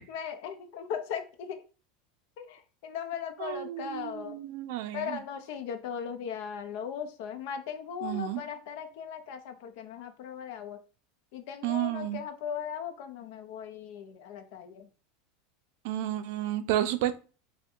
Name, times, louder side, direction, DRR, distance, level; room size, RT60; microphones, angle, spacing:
voice 1, 0.1-1.6 2.4-4.4 4.9-10.8 11.3-14.9, left 8 dB, 60° left, 0.6 m, -38 dB
voice 2, 3.4-5.2 8.0-8.4 11.6-12.2 15.8-17.2, right 13 dB, 65° right, 0.4 m, -31 dB
3.4 x 2.2 x 4.3 m
supercardioid pair, 150°, 0 cm